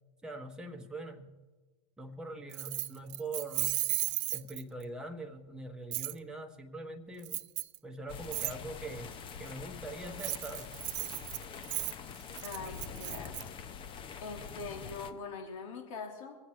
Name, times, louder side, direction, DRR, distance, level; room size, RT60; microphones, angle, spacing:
voice 1, 0.2-1.3 2.0-3.8 4.3-7.5 7.8-10.7, right 2 dB, 5° right, 3 dB, 1.3 m, -43 dB
Keys jangling, 2.5-4.8 5.9-6.1 7.2-7.8 8.3-8.5 10.0-13.4, right 20 dB, 55° right, 0.5 m, -35 dB
sound 1, 8.1-15.1, left 6 dB, 30° left, 0.9 m, -45 dB
voice 2, 12.4-13.3 14.2-16.4, left 4 dB, 65° left, 2 dB, 3.0 m, -42 dB
23.5 x 8.1 x 4.5 m, 1.3 s
hypercardioid pair, 115°, 18 cm